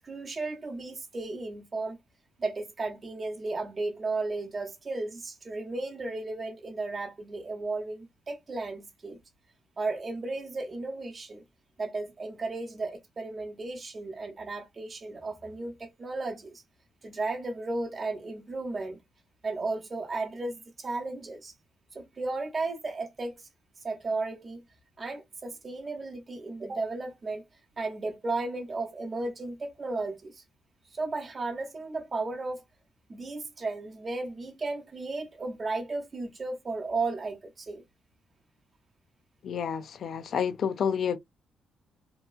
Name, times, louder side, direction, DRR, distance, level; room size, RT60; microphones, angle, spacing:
voice 1, 0.0-2.0 2.4-9.2 9.8-11.4 11.8-16.6 17.0-19.0 19.4-21.5 21.9-23.5 23.8-24.6 25.0-27.4 27.8-30.4 30.9-32.6 33.1-37.8, right 3 dB, 35° right, 0.8 m, -34 dB
voice 2, 39.4-41.2, left 7 dB, 60° left, 0.5 m, -29 dB
2.9 x 2.3 x 2.3 m
cardioid pair, 90°, 0 cm